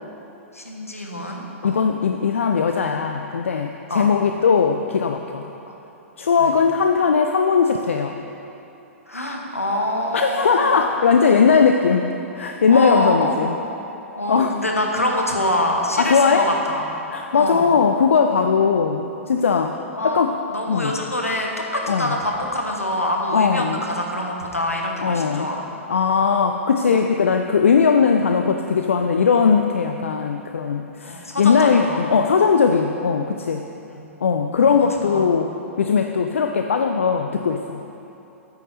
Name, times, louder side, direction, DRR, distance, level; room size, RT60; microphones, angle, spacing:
voice 1, 0.5-1.8 3.9-4.1 5.7-5.8 6.4-6.5 9.1-10.9 12.7-13.5 14.1-16.8 17.3-17.7 19.9-20.2 20.5-25.7 31.0-32.0 33.9-34.1 34.7-35.3, left 1 dB, 85° left, 0 dB, 1.1 m, -25 dB
voice 2, 1.6-5.4 6.2-8.2 10.1-13.5 14.3-14.6 16.0-16.5 17.1-19.8 20.0-20.4 20.7-21.0 21.9-22.1 23.3-23.8 25.0-25.5 25.9-33.6 34.2-37.8, left 6 dB, 65° left, 5 dB, 0.4 m, -19 dB
9.0 x 6.6 x 4.2 m, 3.0 s
figure-of-eight pair, 105°, 7 cm